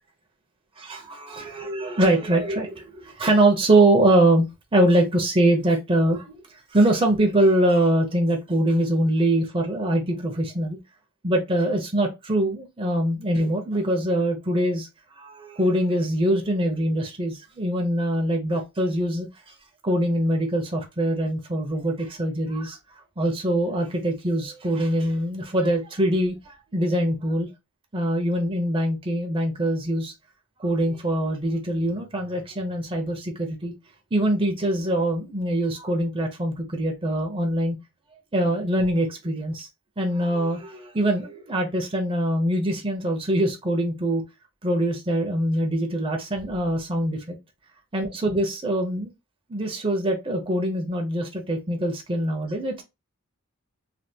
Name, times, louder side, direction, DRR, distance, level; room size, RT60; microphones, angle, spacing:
voice 1, 0.8-4.5 4.7-6.4 6.7-10.8 11.2-14.9 15.2-19.5 19.8-22.8 23.2-27.5 27.9-30.1 30.6-33.7 34.1-37.8 38.3-39.7 40.0-44.2 44.6-47.4 47.9-49.1 49.5-52.8, right 1 dB, 25° right, 0.6 m, -23 dB
3.3 x 2.3 x 2.7 m
head